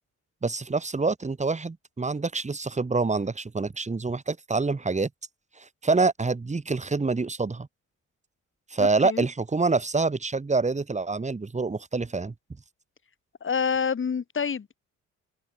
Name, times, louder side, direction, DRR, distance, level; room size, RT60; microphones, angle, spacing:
voice 1, 0.4-5.1 5.6-7.7 8.7-12.3, right 3 dB, 25° right, 3.5 m, -26 dB
voice 2, 8.8-9.3 13.4-14.8, left 6 dB, 40° left, 4.2 m, -28 dB
cardioid pair, 90°, 30 cm